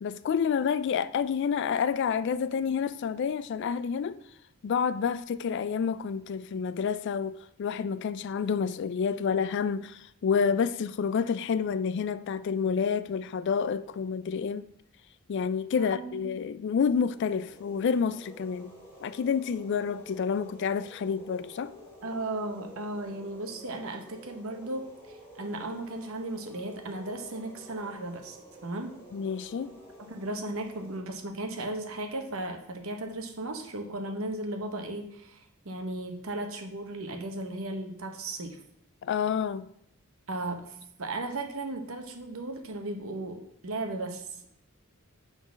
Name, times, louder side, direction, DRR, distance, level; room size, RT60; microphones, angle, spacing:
voice 1, 0.0-4.2 4.6-14.7 15.3-18.7 19.0-21.7 29.1-29.7 39.0-39.7, left 6 dB, 55° left, 0.3 m, -29 dB
voice 2, 15.8-16.3 22.0-29.0 30.0-35.4 35.6-38.6 40.3-44.5, right 2 dB, 70° right, 1.0 m, -36 dB
sound 1, 16.8-31.0, equal, 10° left, 2.4 m, -50 dB
6.1 x 4.0 x 6.2 m
head